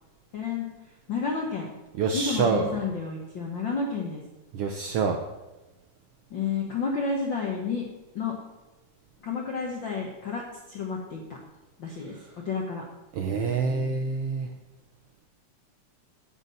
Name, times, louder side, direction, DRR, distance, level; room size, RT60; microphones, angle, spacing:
voice 1, 0.3-0.7 1.1-1.7 2.1-4.2 6.3-7.9 8.1-8.4 9.2-11.2 11.8-12.1 12.4-12.8 13.3-13.9, left 5 dB, 60° left, -1 dB, 1.2 m, -31 dB
voice 2, 1.9-2.8 4.5-5.2 12.2-12.3 13.1-14.5, right 5 dB, 85° right, 4 dB, 1.3 m, -27 dB
9.7 x 5.6 x 7.6 m, 1.1 s
omnidirectional pair, 3.6 m